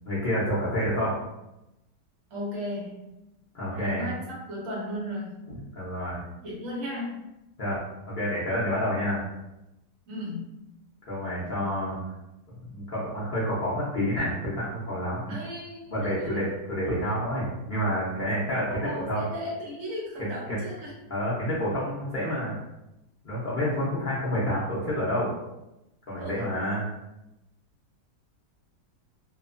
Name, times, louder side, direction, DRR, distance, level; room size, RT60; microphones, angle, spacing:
voice 1, 0.0-1.2 3.5-4.1 5.5-6.2 7.6-7.8 8.1-9.3 11.1-12.0 12.7-15.4 15.9-18.7 19.0-19.3 20.2-20.6 21.1-22.6 23.2-25.3 26.1-26.8, equal, 80° left, -8 dB, 0.4 m, -29 dB
voice 2, 2.3-3.1 3.7-4.2 4.5-5.3 6.4-7.3 10.1-10.5 15.3-16.4 18.7-20.9 26.2-26.4, left 1 dB, 55° right, -4 dB, 1.2 m, -35 dB
2.9 x 2.0 x 2.5 m, 0.93 s
omnidirectional pair, 1.8 m